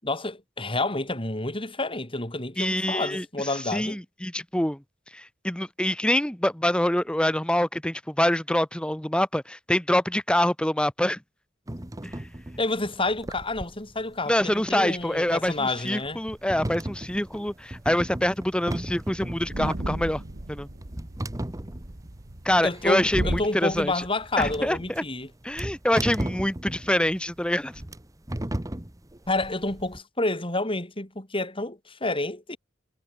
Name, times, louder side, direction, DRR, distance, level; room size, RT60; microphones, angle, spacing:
voice 1, 0.0-4.0 12.6-16.2 22.6-25.3 29.3-32.6, left 2 dB, 30° left, 5.6 m, -29 dB
voice 2, 2.6-3.2 3.7-4.8 5.1-11.2 14.3-20.2 20.5-20.7 22.4-24.0 24.4-25.0 25.4-27.7, left 1 dB, 5° left, 1.0 m, -25 dB
sound 1, 11.7-30.0, right 1 dB, 20° right, 1.2 m, -36 dB
sound 2, 17.8-17.9 18.2-18.4 18.7-18.8 19.0-23.5, right 1 dB, 55° right, 1.7 m, -34 dB
head